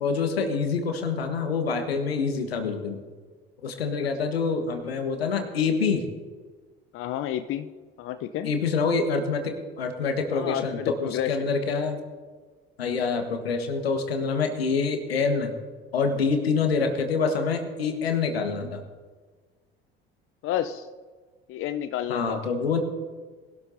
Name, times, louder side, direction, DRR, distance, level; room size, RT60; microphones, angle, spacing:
voice 1, 0.0-3.0 3.6-6.1 8.4-12.0 12.8-15.5 15.9-18.8 22.1-22.8, left 5 dB, 80° left, 6 dB, 1.4 m, -26 dB
voice 2, 6.9-7.7 8.0-8.5 10.3-11.5 20.4-20.9 21.5-22.4, left 11 dB, 45° left, 10 dB, 0.6 m, -30 dB
20.5 x 12.0 x 2.7 m, 1.5 s
figure-of-eight pair, 60°, 30 cm